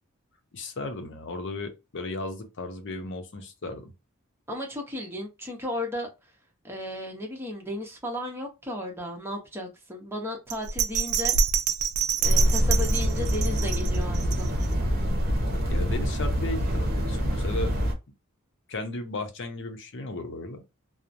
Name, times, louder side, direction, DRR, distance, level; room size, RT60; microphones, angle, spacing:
voice 1, 0.5-3.9 15.5-17.7 18.7-20.6, left 2 dB, 55° left, 0.6 m, -35 dB
voice 2, 4.5-6.1 6.6-11.3 12.2-14.9, left 1 dB, 10° right, 0.8 m, -35 dB
Bell, 10.5-14.8 15.2-15.3, right 6 dB, 75° right, 0.3 m, -27 dB
sound 1, 12.2-17.9, equal, 45° right, 0.8 m, -25 dB
3.0 x 2.0 x 2.5 m
head